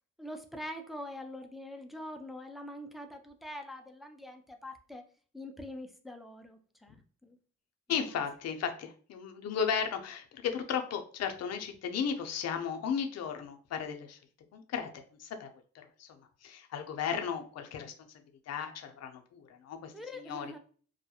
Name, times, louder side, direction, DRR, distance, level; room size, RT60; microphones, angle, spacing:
voice 1, 0.2-5.1 5.3-7.4 7.9-8.2 19.9-20.6, left 1 dB, ahead, 4 dB, 0.3 m, -44 dB
voice 2, 7.9-14.2 14.5-15.5 15.7-16.1 16.4-17.9 18.5-20.6, left 7 dB, 60° left, 5 dB, 0.5 m, -35 dB
2.3 x 2.1 x 2.8 m, 0.42 s
cardioid pair, 90°, 30 cm